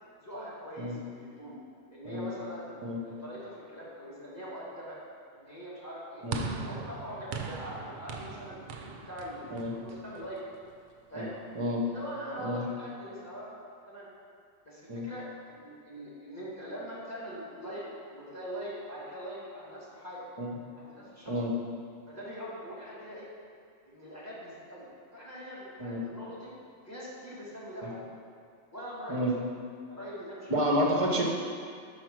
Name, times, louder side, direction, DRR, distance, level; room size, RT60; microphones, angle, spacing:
voice 1, 0.2-1.6 1.9-2.7 3.0-5.0 5.3-6.2 6.6-10.4 11.1-11.3 11.9-13.6 13.9-14.1 14.6-17.8 18.1-20.3 20.8-21.4 22.1-23.3 23.8-26.5 26.8-28.0 28.7-29.3 29.8-30.5, equal, 10° left, -7 dB, 1.5 m, -42 dB
sound 1, 6.3-10.7, right 4 dB, 75° right, 0.4 m, -40 dB
voice 2, 30.5-31.2, equal, 30° right, -1 dB, 0.8 m, -29 dB
4.9 x 4.8 x 6.0 m, 2.2 s
omnidirectional pair, 1.4 m